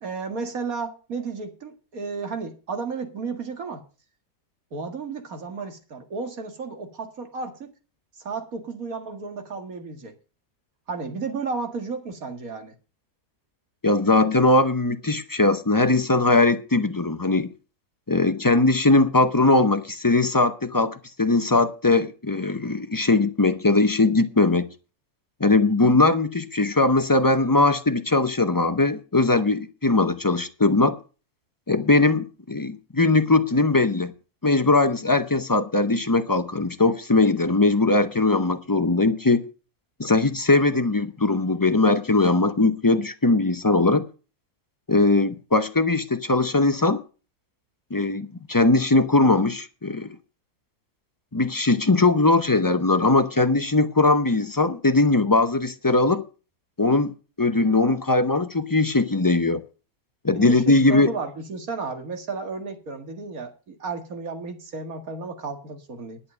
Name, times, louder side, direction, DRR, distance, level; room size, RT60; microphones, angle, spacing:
voice 1, 0.0-3.8 4.7-7.7 8.2-10.1 10.9-12.7 60.3-66.2, right 4 dB, 65° right, 2.4 m, -33 dB
voice 2, 13.8-17.5 18.1-24.7 25.4-31.0 31.7-34.1 34.4-39.4 40.0-44.0 44.9-47.0 47.9-50.2 51.3-56.2 56.8-59.6 60.2-61.1, left 2 dB, 30° left, 0.4 m, -20 dB
11.0 x 8.5 x 6.7 m
omnidirectional pair, 1.6 m